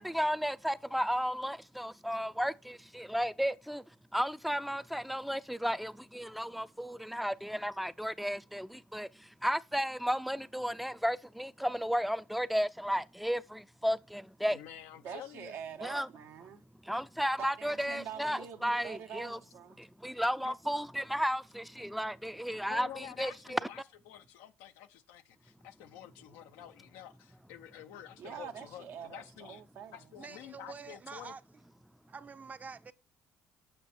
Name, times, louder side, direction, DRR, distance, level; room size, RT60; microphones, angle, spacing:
voice 1, 0.0-3.8 4.1-9.1 9.4-14.6 15.8-16.1 16.9-19.4 19.8-23.6, equal, ahead, 0.5 m, -33 dB
voice 2, 14.5-15.5 20.4-20.5 22.7-29.6 29.9-31.3, left 11 dB, 85° left, 0.5 m, -49 dB
voice 3, 15.0-16.6 17.4-19.8 28.2-30.0, right 8 dB, 70° right, 1.3 m, -45 dB
voice 4, 30.2-31.4 32.1-32.9, right 5 dB, 35° right, 0.8 m, -46 dB
7.3 x 6.0 x 4.3 m
supercardioid pair, 70°, 5 cm